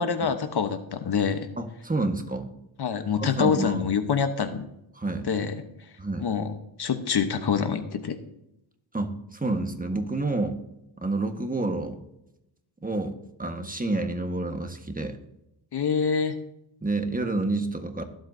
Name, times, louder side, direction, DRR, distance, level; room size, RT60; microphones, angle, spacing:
voice 1, 0.0-1.5 2.8-4.6 5.2-5.6 6.2-8.2 15.7-16.4, left 6 dB, 55° left, 9 dB, 1.1 m, -26 dB
voice 2, 1.6-2.5 3.2-3.9 4.9-5.3 6.0-6.3 8.9-10.6 11.0-12.0 12.8-15.2 16.8-18.0, right 2 dB, 15° right, 5 dB, 1.5 m, -29 dB
21.5 x 8.0 x 2.8 m, 0.84 s
cardioid pair, 85°, 48 cm